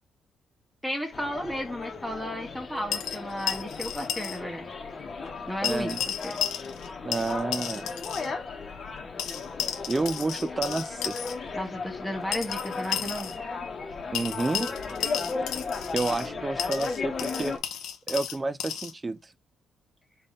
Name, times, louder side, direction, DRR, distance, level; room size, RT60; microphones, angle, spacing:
voice 1, 0.8-4.6 5.5-5.9 6.2-6.3 11.5-13.3, equal, ahead, 1.0 m, -33 dB
sound 1, 1.1-17.6, left 4 dB, 40° left, 1.0 m, -36 dB
sound 2, 2.9-4.4 4.6-4.7 5.6-6.9 7.1-8.3 9.2-11.3 12.3-13.4 14.1-16.3 16.6-18.9, left 10 dB, 85° left, 0.8 m, -33 dB
voice 2, 5.6-6.0 7.0-7.9 9.9-11.2 14.1-14.7 15.9-17.5 18.1-19.2, right 3 dB, 25° right, 0.4 m, -30 dB
3.8 x 3.5 x 3.9 m
cardioid pair, 90°, 0 cm